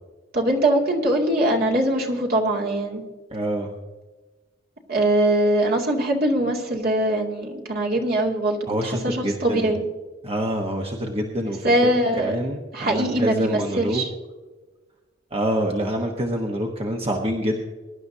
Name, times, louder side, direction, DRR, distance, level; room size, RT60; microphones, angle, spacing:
voice 1, 0.3-3.0 4.9-9.8 11.6-12.4 12.7-14.1, right 1 dB, 55° right, -1 dB, 2.4 m, -22 dB
voice 2, 3.3-3.7 8.7-9.8 10.2-11.9 12.2-14.1 15.3-17.6, equal, 30° right, 1 dB, 1.1 m, -26 dB
22.5 x 11.5 x 2.8 m, 1.2 s
head